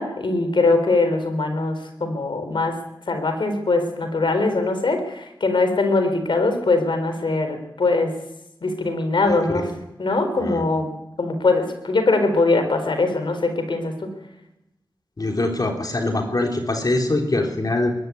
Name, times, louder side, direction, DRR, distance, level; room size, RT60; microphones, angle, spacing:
voice 1, 0.0-2.8 3.1-8.1 8.6-9.7 10.0-10.9 11.2-14.1, left 3 dB, 75° left, 7 dB, 4.0 m, -21 dB
voice 2, 15.2-17.9, left 2 dB, 50° left, 2 dB, 3.4 m, -23 dB
21.5 x 12.5 x 9.7 m, 0.91 s
cardioid pair, 50°, 8 cm